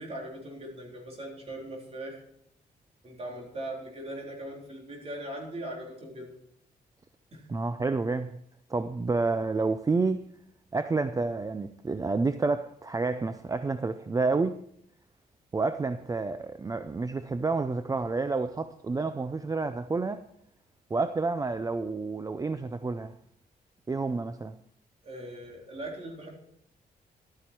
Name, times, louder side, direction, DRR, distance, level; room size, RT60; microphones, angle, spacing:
voice 1, 0.0-2.2 3.0-6.3 7.3-7.4 25.0-26.3, right 1 dB, 40° right, 3.8 m, -40 dB
voice 2, 7.5-8.4 8.7-10.3 10.7-14.6 15.5-20.3 20.9-23.1 23.9-24.6, right 3 dB, 20° right, 0.4 m, -29 dB
12.5 x 9.4 x 4.5 m
cardioid pair, 115°, 16 cm